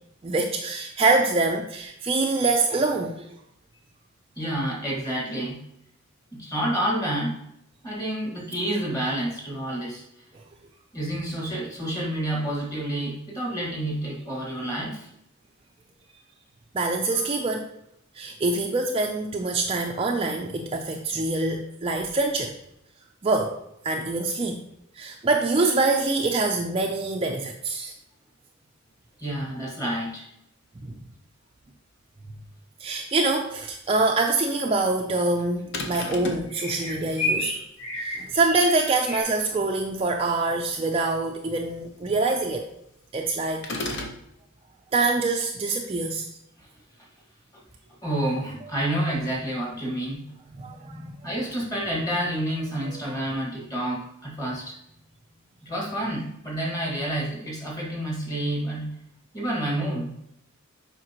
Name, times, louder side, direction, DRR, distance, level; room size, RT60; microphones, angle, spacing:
voice 1, 0.2-3.2 16.7-17.7 18.2-22.5 23.2-23.6 23.8-24.6 25.0-27.9 32.8-37.5 37.9-42.7 43.1-44.0 44.9-46.3 50.5-51.3 52.9-53.0, right 3 dB, 25° right, 1 dB, 0.4 m, -25 dB
voice 2, 4.3-5.6 6.3-7.4 7.8-10.0 10.9-15.1 29.2-30.3 47.5-47.6 48.0-50.2 51.2-54.8 55.6-59.0 59.3-60.1, right 1 dB, 15° left, -3 dB, 1.7 m, -29 dB
sound 1, 33.9-34.2 36.5-39.2, left 1 dB, 75° left, 1.7 m, -30 dB
sound 2, 35.7-36.5 43.6-44.2, left 2 dB, 55° left, 0.8 m, -32 dB
7.6 x 5.2 x 2.9 m, 0.78 s
head